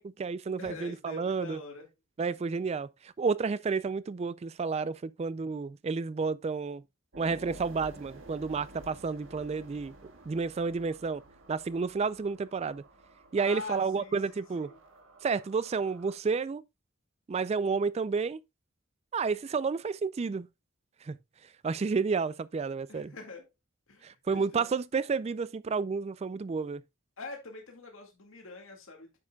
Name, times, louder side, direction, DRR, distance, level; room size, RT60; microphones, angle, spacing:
voice 1, 0.0-1.6 2.2-6.8 7.2-9.9 10.3-11.2 11.5-12.8 13.3-14.7 15.2-16.6 17.3-18.4 19.1-20.5 21.0-21.2 21.6-23.1 24.0-26.8, right 5 dB, 30° right, 0.3 m, -31 dB
voice 2, 0.6-1.9 13.4-14.8 22.9-23.5 23.9-24.6 27.2-29.3, left 3 dB, 75° left, 2.1 m, -44 dB
sound 1, 7.1-16.2, right 1 dB, 70° right, 1.7 m, -52 dB
9.6 x 7.2 x 2.3 m
head